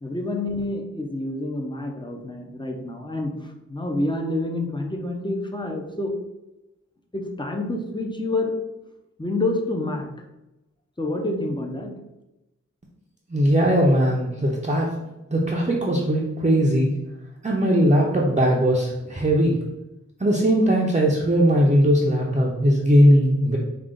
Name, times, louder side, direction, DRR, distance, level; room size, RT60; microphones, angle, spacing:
voice 1, 0.0-6.1 7.1-8.5 9.2-10.1 11.0-11.9, left 2 dB, 15° left, 2 dB, 0.7 m, -28 dB
voice 2, 13.3-14.9 15.3-16.9 17.4-19.6 20.2-23.6, equal, 25° right, -4 dB, 0.6 m, -19 dB
4.9 x 2.4 x 3.8 m, 0.96 s
wide cardioid pair, 70°, 30 cm